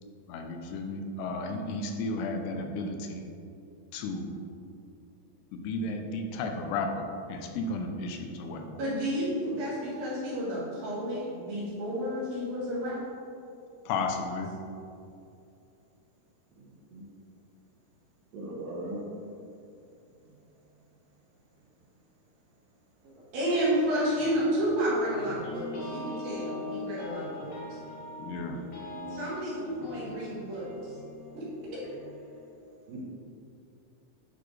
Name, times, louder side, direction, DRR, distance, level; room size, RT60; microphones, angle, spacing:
voice 1, 0.3-3.3 3.9-4.3 5.5-8.8 13.9-14.5 28.2-28.6, left 3 dB, 85° left, 4 dB, 2.6 m, -33 dB
voice 2, 8.8-13.0 23.0-27.8 29.1-31.0 31.3-31.4, equal, 65° right, -8 dB, 3.2 m, -31 dB
voice 3, 16.5-17.0 18.3-19.0 30.0-30.1 32.9-33.0, right 1 dB, 85° right, -4 dB, 3.2 m, -40 dB
sound 1, 24.1-32.5, left 2 dB, 65° left, 1.9 m, -42 dB
9.1 x 4.1 x 3.2 m, 2.6 s
omnidirectional pair, 4.7 m